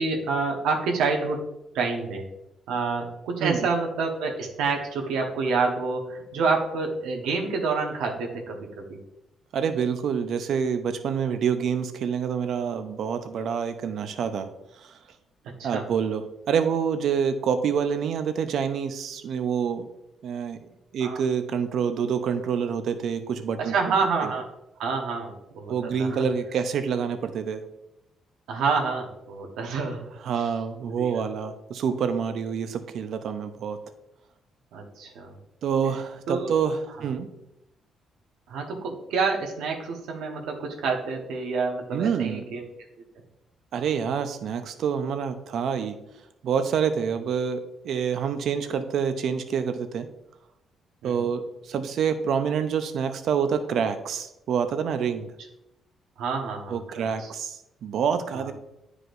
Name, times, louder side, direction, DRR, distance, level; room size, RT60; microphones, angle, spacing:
voice 1, 0.0-1.4 1.7-2.2 2.7-9.0 15.6-15.9 21.0-21.2 23.6-24.5 24.8-26.2 28.5-30.0 30.3-30.5 30.8-31.2 34.7-35.3 36.3-36.5 38.5-42.7 43.7-43.8 51.0-51.3 56.2-57.3 58.3-58.5, right 4 dB, 90° right, 1 dB, 1.1 m, -28 dB
voice 2, 9.5-14.5 14.8-15.0 15.6-19.9 20.2-20.6 20.9-24.0 24.2-24.3 25.7-27.6 30.2-33.8 35.6-37.3 41.9-42.4 43.7-45.9 46.4-50.1 51.0-55.3 56.7-58.5, right 7 dB, 70° right, 9 dB, 0.6 m, -27 dB
9.4 x 4.8 x 2.6 m, 0.88 s
cardioid pair, 90°, 0 cm